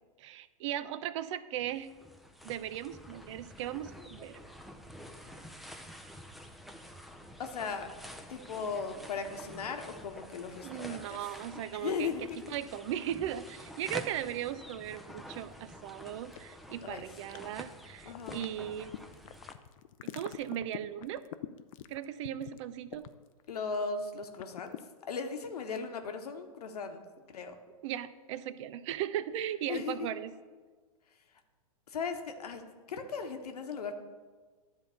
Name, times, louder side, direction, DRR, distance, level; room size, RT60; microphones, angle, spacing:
voice 1, 0.2-1.9 2.4-4.4 10.6-12.1 12.5-18.9 20.0-21.2 21.9-23.1 27.8-30.3, right 11 dB, 50° right, 14 dB, 0.5 m, -37 dB
sound 1, 1.6-19.5, equal, ahead, 0.5 m, -49 dB
voice 2, 7.4-7.9 8.3-11.2 11.7-12.2 16.8-17.0 18.1-18.5 23.5-24.8 25.1-27.6 29.7-30.1 31.9-32.6 32.9-33.9, left 5 dB, 80° left, 6 dB, 1.2 m, -37 dB
sound 2, 12.0-13.0 13.3-13.4 13.9-14.5 15.1-15.2 15.5-15.6 16.3-16.9 17.3-17.8 18.1-23.8 24.0-24.8, left 12 dB, 60° left, 0.6 m, -45 dB
10.5 x 4.0 x 6.9 m, 1.4 s
hypercardioid pair, 120°, 20 cm